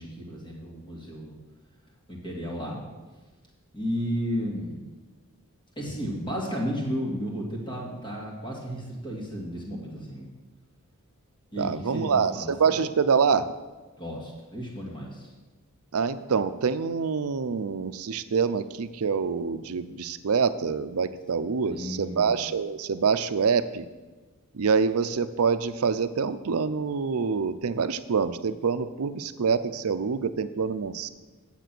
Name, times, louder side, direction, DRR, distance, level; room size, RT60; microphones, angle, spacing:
voice 1, 0.0-1.3 2.1-2.8 3.7-4.8 5.8-10.3 11.5-12.7 14.0-15.3 21.6-22.4, equal, 20° left, -3 dB, 2.2 m, -33 dB
voice 2, 11.6-13.5 15.9-23.9 24.5-31.1, right 5 dB, 80° right, 12 dB, 0.5 m, -26 dB
9.2 x 7.4 x 6.0 m, 1.3 s
head